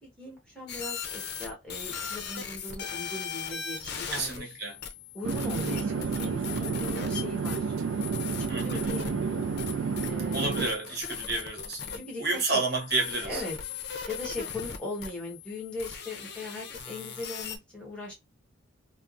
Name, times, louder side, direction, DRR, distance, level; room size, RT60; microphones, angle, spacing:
voice 1, 0.0-4.5 5.1-7.7 8.6-9.5 10.0-10.6 11.9-12.6 13.2-13.5 14.1-18.1, left 2 dB, 5° left, 1.1 m, -39 dB
sound 1, 0.7-17.6, left 7 dB, 55° left, 0.5 m, -39 dB
voice 2, 4.1-4.8 8.5-8.9 10.3-13.4, right 3 dB, 50° right, 1.0 m, -31 dB
Chatter / Fixed-wing aircraft airplane, 5.2-10.7, right 5 dB, 75° right, 0.3 m, -30 dB
3.3 x 2.0 x 2.5 m
head